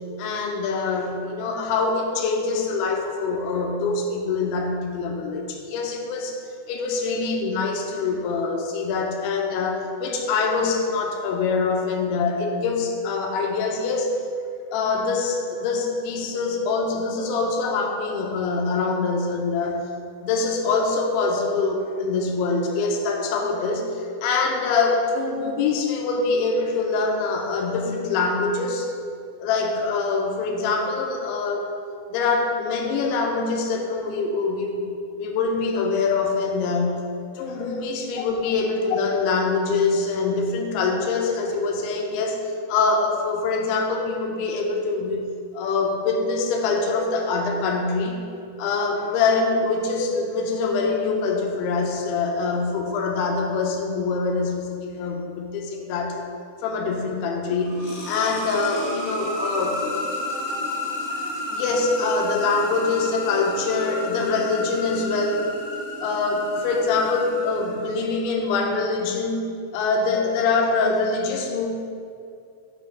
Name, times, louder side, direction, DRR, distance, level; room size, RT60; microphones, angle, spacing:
voice 1, 0.2-6.4 6.7-14.1 14.7-19.9 20.2-28.9 29.4-31.7 32.1-34.9 35.2-42.4 42.7-45.3 45.5-48.2 48.6-56.2 56.6-59.8 61.5-65.5 66.0-69.4 69.7-71.7, left 4 dB, 80° left, 1 dB, 3.0 m, -24 dB
sound 1, 57.4-68.2, left 2 dB, 60° left, 2.1 m, -32 dB
6.5 x 6.4 x 6.3 m, 2.4 s
omnidirectional pair, 5.8 m